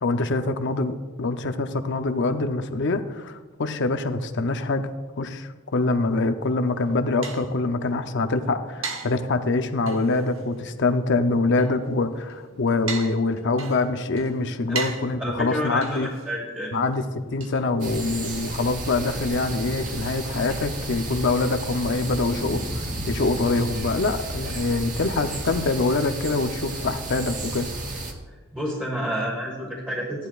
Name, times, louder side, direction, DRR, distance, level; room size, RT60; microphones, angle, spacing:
voice 1, 0.0-4.9 5.2-16.1 16.7-27.7, left 3 dB, 60° left, 8 dB, 0.7 m, -25 dB
sound 1, 6.6-18.3, right 5 dB, 70° right, 1.1 m, -40 dB
voice 2, 15.2-16.8 28.5-30.3, equal, 10° right, -4 dB, 1.5 m, -29 dB
sound 2, 17.8-28.1, right 2 dB, 40° right, 1.3 m, -32 dB
14.5 x 10.5 x 2.4 m, 1.3 s
head